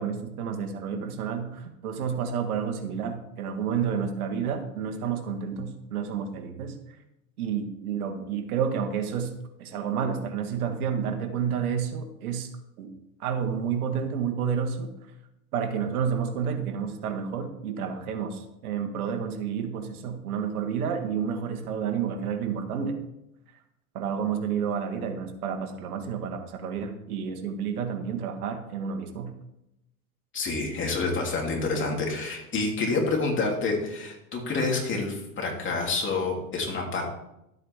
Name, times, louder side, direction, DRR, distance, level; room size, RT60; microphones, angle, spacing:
voice 1, 0.0-6.8 7.4-9.3 9.6-12.5 12.8-12.9 13.2-14.9 15.5-23.0 23.9-29.3, right 7 dB, 80° right, 7 dB, 1.6 m, -30 dB
voice 2, 30.3-37.0, left 3 dB, 25° left, 0 dB, 3.0 m, -28 dB
12.5 x 8.2 x 3.5 m, 0.85 s
hypercardioid pair, 110°, 44 cm